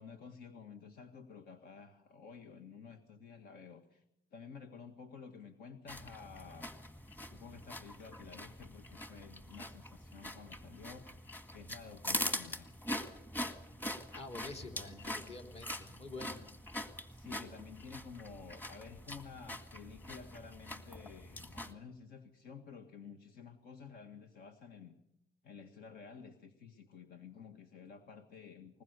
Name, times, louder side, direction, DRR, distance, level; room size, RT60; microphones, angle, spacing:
voice 1, 0.0-4.0 4.3-6.7 7.3-12.6 17.0-25.0 25.4-28.8, left 6 dB, 65° left, 7 dB, 1.8 m, -52 dB
sound 1, 5.9-21.7, equal, 10° left, 1.9 m, -43 dB
voice 2, 14.1-16.5, left 3 dB, 40° left, 5 dB, 3.4 m, -47 dB
21.0 x 20.5 x 6.7 m, 0.80 s
cardioid pair, 110°, 17 cm